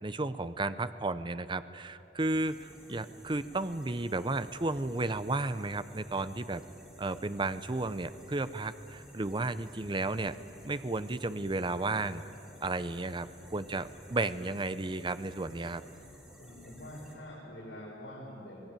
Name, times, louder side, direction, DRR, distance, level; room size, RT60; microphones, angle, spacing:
voice 1, 0.0-6.6 7.0-10.3 10.6-12.2 12.6-15.8, right 2 dB, 25° right, 13 dB, 0.7 m, -33 dB
sound 1, 2.2-17.2, equal, 5° right, 3.2 m, -54 dB
voice 2, 16.4-18.6, left 1 dB, 85° left, -7 dB, 6.5 m, -45 dB
25.0 x 19.5 x 9.1 m, 2.9 s
head